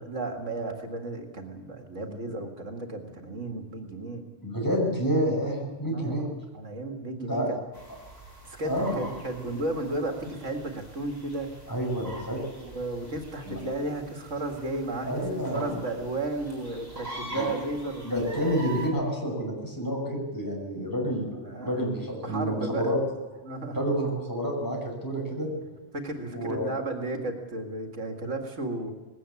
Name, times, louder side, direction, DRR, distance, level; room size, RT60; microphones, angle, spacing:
voice 1, 0.0-4.3 5.8-6.2 6.5-7.6 8.4-11.5 12.6-18.0 21.4-21.8 22.2-22.9 23.4-23.8 25.9-28.9, right 2 dB, 80° right, 4 dB, 2.4 m, -34 dB
voice 2, 4.4-6.3 7.2-7.5 8.6-9.1 11.7-12.4 13.5-13.6 15.0-15.8 17.3-17.5 18.0-23.0 23.7-25.5 26.3-26.7, equal, 15° left, -1 dB, 5.9 m, -29 dB
sound 1, 7.7-18.9, right 2 dB, 30° right, 8.0 m, -44 dB
20.0 x 17.5 x 8.4 m, 1.2 s
omnidirectional pair, 1.3 m